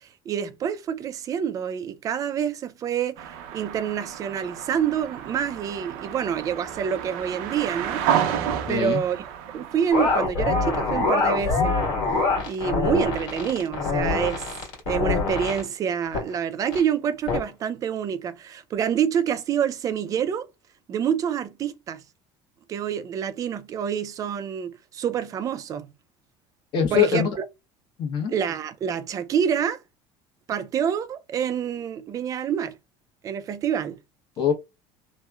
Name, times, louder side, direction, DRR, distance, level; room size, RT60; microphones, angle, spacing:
voice 1, 0.3-3.2 3.5-8.0 8.7-9.2 9.5-11.8 12.5-14.5 14.9-20.5 20.9-22.0 22.7-25.9 26.9-27.2 28.3-29.8 30.5-32.7 33.2-34.0, right 8 dB, 30° right, 0.4 m, -27 dB
sound 1, 3.2-10.2, right 9 dB, 75° right, 0.6 m, -31 dB
voice 2, 8.7-9.0 26.7-27.3 28.0-28.3 34.4-34.5, left 8 dB, 45° left, 0.9 m, -22 dB
sound 2, 9.9-15.6 16.1-16.3 16.7-16.8 17.3-17.4, left 3 dB, 65° left, 1.5 m, -24 dB
2.9 x 2.1 x 2.3 m
cardioid pair, 150°, 11 cm